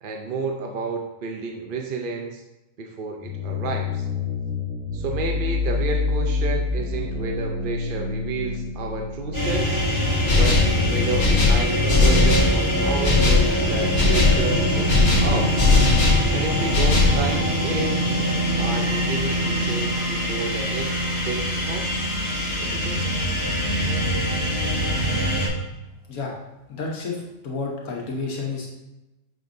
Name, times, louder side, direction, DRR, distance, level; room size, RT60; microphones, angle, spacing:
voice 1, 0.0-2.4 2.8-4.1 4.9-9.9 10.4-10.6 10.9-15.5 16.3-18.0 18.6-22.1 22.6-23.1, right 4 dB, 50° right, 2 dB, 0.6 m, -31 dB
sound 1, 3.2-16.9, left 3 dB, 10° right, 0.7 m, -28 dB
sound 2, 9.3-25.5, equal, 20° left, 2.2 m, -24 dB
sound 3, 10.3-10.8 11.2-12.6 13.0-13.5 14.0-14.4 14.9-16.3 16.7-17.2, left 3 dB, 55° left, 1.6 m, -18 dB
voice 2, 26.7-28.7, left 4 dB, 85° left, -1 dB, 1.5 m, -30 dB
8.9 x 6.0 x 2.6 m, 1.0 s
omnidirectional pair, 1.4 m